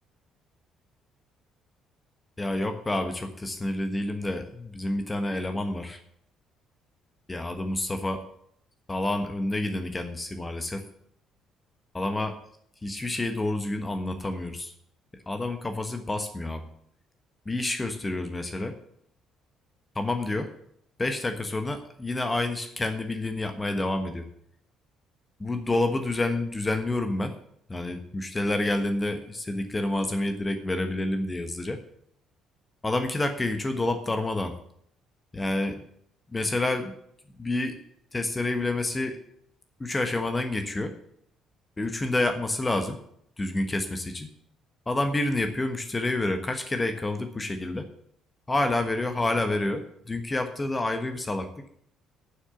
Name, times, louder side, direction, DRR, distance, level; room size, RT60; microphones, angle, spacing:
voice 1, 2.4-6.0 7.3-8.2 8.9-10.9 11.9-12.4 12.8-14.7 15.3-16.7 17.4-18.8 19.9-20.5 21.0-24.3 25.4-27.3 27.7-31.8 32.8-34.5 35.3-35.8 36.3-36.9 37.4-37.8 38.1-39.2 39.8-40.9 41.8-43.0 43.4-44.3 44.9-47.9 48.5-51.5, left 2 dB, 20° left, 7 dB, 1.3 m, -28 dB
11.5 x 6.5 x 7.0 m, 0.69 s
figure-of-eight pair, 45°, 0 cm